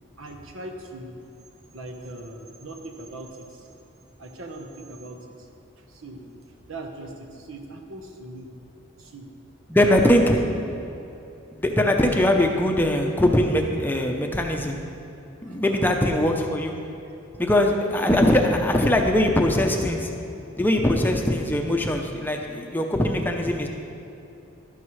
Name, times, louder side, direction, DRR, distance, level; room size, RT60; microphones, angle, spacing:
voice 1, 0.2-1.2 1.7-3.7 4.2-5.5 5.9-6.3 6.7-8.5 9.0-9.3 10.1-10.6 15.4-15.8 17.1-17.2 17.7-17.8, right 2 dB, 85° right, 3 dB, 1.2 m, -40 dB
voice 2, 9.7-10.4 11.5-14.8 15.4-16.8 17.4-20.1 20.6-23.7, left 1 dB, 10° left, 2 dB, 0.6 m, -21 dB
12.0 x 11.5 x 3.2 m, 2.9 s
head